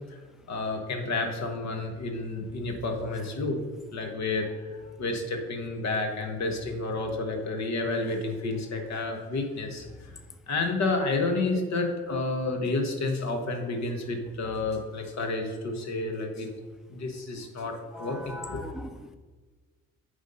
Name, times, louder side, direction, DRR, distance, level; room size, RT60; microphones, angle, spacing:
voice 1, 0.5-3.6 3.9-10.1 10.5-16.5 16.9-18.6, left 3 dB, 60° left, 1.4 m, -30 dB
voice 2, 17.9-19.2, left 1 dB, ahead, 0.4 m, -40 dB
9.1 x 3.6 x 5.4 m
cardioid pair, 90°, 30 cm